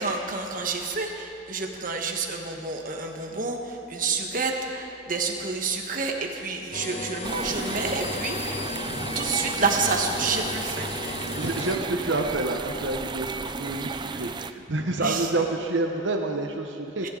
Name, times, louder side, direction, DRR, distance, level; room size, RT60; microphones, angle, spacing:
voice 1, 0.0-8.6 9.1-10.9 15.0-15.3 17.0-17.1, right 4 dB, 50° right, 2 dB, 1.4 m, -29 dB
sound 1, 6.7-11.8, left 3 dB, 35° left, 0.6 m, -34 dB
sound 2, 7.2-14.5, right 4 dB, 25° right, 0.4 m, -34 dB
Bell, 7.8-10.5, left 6 dB, 70° left, 1.9 m, -43 dB
voice 2, 11.2-17.1, right 2 dB, 85° right, 3 dB, 0.9 m, -28 dB
30.0 x 10.5 x 3.9 m, 2.7 s
head